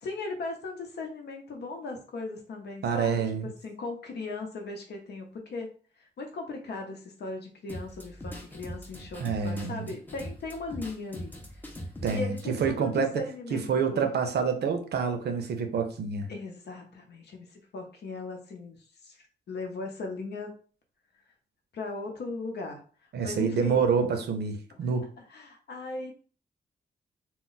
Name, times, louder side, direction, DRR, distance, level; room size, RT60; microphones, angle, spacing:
voice 1, 0.0-5.7 6.0-11.3 12.1-14.1 16.3-19.2 19.5-20.5 21.7-22.8 23.2-23.8 24.7-24.9 25.3-26.1, left 3 dB, 70° left, 0.7 m, -38 dB
voice 2, 2.8-3.5 9.2-9.9 12.0-13.1 13.5-16.3 23.1-25.1, right 6 dB, 70° right, 0.5 m, -27 dB
sound 1, 7.7-12.7, equal, 10° left, 0.5 m, -41 dB
2.2 x 2.1 x 3.8 m
wide cardioid pair, 135°, 18 cm